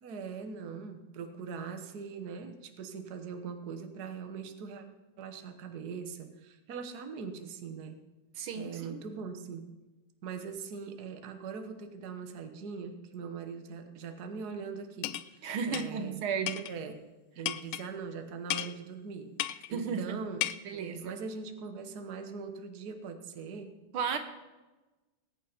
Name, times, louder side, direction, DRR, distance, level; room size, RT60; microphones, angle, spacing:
voice 1, 0.0-4.9 5.2-8.0 8.5-9.7 10.2-16.2 16.7-17.0 17.3-20.4 20.7-23.7, right 5 dB, 55° right, 7 dB, 1.5 m, -41 dB
voice 2, 8.4-9.0 15.4-16.7 19.7-20.2 20.7-21.0 23.9-24.2, right 6 dB, 85° right, 7 dB, 1.9 m, -34 dB
sound 1, 15.0-15.3 15.7-15.9 16.5-16.7 17.5-17.9 18.5-18.7 19.4-19.7 20.4-20.5, left 14 dB, 80° left, 1.4 m, -33 dB
19.0 x 8.4 x 5.0 m, 1.1 s
omnidirectional pair, 2.3 m